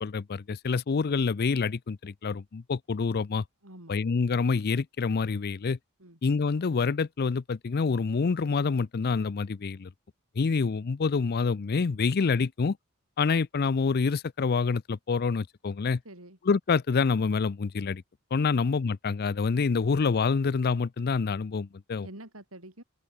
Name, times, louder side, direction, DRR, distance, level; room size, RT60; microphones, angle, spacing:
voice 1, 0.0-3.4 3.9-5.8 6.2-9.9 10.4-12.8 13.2-16.0 16.5-18.0 18.3-22.1, left 4 dB, 45° left, 0.5 m, -27 dB
voice 2, 3.6-4.0 6.0-6.2 16.0-16.4 18.5-18.6 22.0-22.8, right 1 dB, 70° right, 6.1 m, -47 dB
head